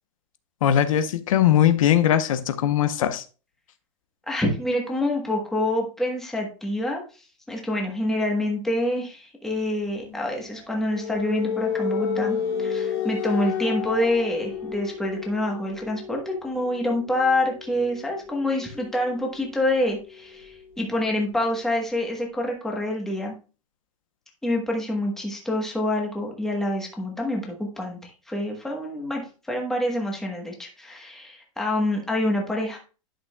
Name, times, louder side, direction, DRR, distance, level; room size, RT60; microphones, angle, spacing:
voice 1, 0.6-3.2, left 10 dB, 75° left, 11 dB, 0.8 m, -20 dB
voice 2, 4.3-7.0 7.5-23.3 24.4-32.8, left 1 dB, ahead, 0 dB, 1.1 m, -26 dB
sound 1, 10.0-21.5, left 7 dB, 45° left, 2.1 m, -32 dB
11.0 x 6.1 x 2.3 m, 0.35 s
supercardioid pair, 175°, 18 cm